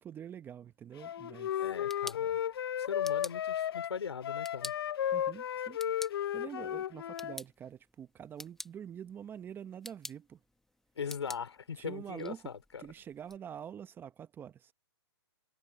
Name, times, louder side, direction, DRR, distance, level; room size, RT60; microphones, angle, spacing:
voice 1, 0.0-1.5 5.1-5.8 6.3-10.4 11.8-12.4 12.8-14.7, right 9 dB, 15° right, 1.1 m, -46 dB
Wind instrument woodwind instrument, 1.0-7.4, left 10 dB, 60° left, 0.7 m, -34 dB
voice 2, 1.6-2.4 2.8-4.7 11.0-12.8, left 6 dB, 80° left, 5.3 m, -40 dB
sound 1, 1.6-13.4, left 1 dB, ahead, 1.4 m, -51 dB
hypercardioid pair, 140°, 14 cm